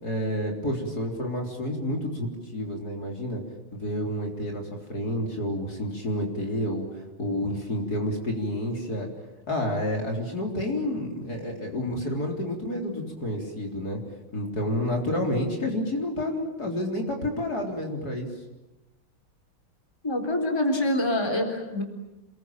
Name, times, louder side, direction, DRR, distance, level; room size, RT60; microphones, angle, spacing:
voice 1, 0.0-3.4 3.7-9.1 9.5-14.0 14.3-18.3, left 1 dB, 45° left, 2 dB, 4.3 m, -29 dB
voice 2, 20.0-21.8, left 1 dB, 10° left, 4 dB, 3.8 m, -25 dB
28.5 x 22.0 x 8.9 m, 0.99 s
omnidirectional pair, 2.3 m